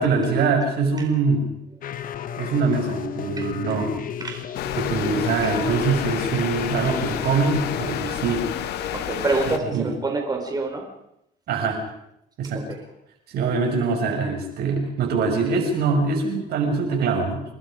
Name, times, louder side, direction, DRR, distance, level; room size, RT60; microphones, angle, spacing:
voice 1, 0.0-1.5 2.4-3.9 4.8-8.5 9.5-9.9 11.5-11.8 12.4-12.7 13.3-17.4, right 4 dB, 70° right, 3 dB, 6.3 m, -23 dB
sound 1, 1.8-8.0, left 9 dB, 55° left, 1.4 m, -33 dB
sound 2, 4.5-9.6, left 10 dB, 75° left, 1.9 m, -30 dB
voice 2, 8.9-10.8 12.7-12.8, right 3 dB, 25° right, 2 dB, 4.7 m, -26 dB
29.0 x 20.5 x 5.1 m, 0.79 s
cardioid pair, 110°, 17 cm